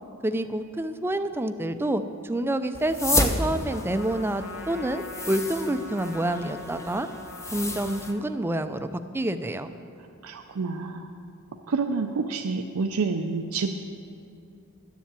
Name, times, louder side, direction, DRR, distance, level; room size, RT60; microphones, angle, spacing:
voice 1, 0.2-7.1 7.5-8.9 9.1-9.7, right 1 dB, 10° right, 9 dB, 0.4 m, -28 dB
sound 1, 2.7-8.1, left 2 dB, 15° left, 0.7 m, -31 dB
Trumpet, 3.7-8.4, left 2 dB, 75° left, 1.1 m, -42 dB
voice 2, 10.2-11.1 11.7-13.7, right 4 dB, 80° right, 4 dB, 0.5 m, -28 dB
11.0 x 7.2 x 7.4 m, 2.5 s
head